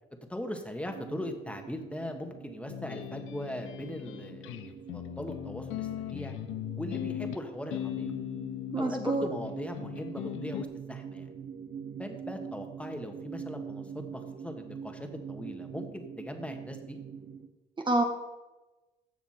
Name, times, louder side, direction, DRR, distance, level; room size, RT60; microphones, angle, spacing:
voice 1, 0.3-6.4 6.8-8.1 8.8-11.3 12.0-17.0, left 1 dB, 5° left, 4 dB, 1.5 m, -39 dB
sound 1, 0.9-17.5, right 7 dB, 55° right, 1.1 m, -44 dB
sound 2, 2.7-10.6, left 14 dB, 80° left, 0.5 m, -38 dB
voice 2, 8.7-9.3 17.8-18.0, right 2 dB, 25° right, 3 dB, 1.2 m, -27 dB
15.0 x 5.9 x 4.4 m, 1.1 s
cardioid pair, 90°, 20 cm